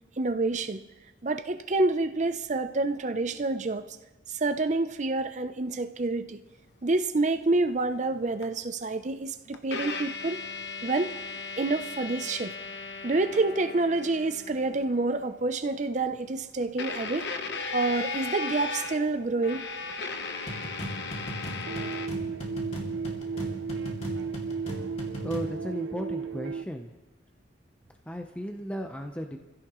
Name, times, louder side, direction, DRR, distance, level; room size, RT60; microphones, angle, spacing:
voice 1, 0.2-0.8 1.2-3.8 4.3-6.4 6.8-10.4 10.8-11.1 11.6-12.5 13.0-17.3 17.7-19.7, right 2 dB, 40° right, 0.6 m, -28 dB
sound 1, 8.4-8.5 9.5-15.4 16.8-22.1, left 4 dB, 65° left, 1.1 m, -37 dB
sound 2, 20.5-25.6, equal, 35° left, 2.6 m, -37 dB
sound 3, 21.7-26.6, right 5 dB, 90° right, 0.5 m, -34 dB
voice 2, 25.2-26.9 28.1-29.4, equal, 5° left, 0.8 m, -35 dB
27.0 x 16.0 x 3.1 m
head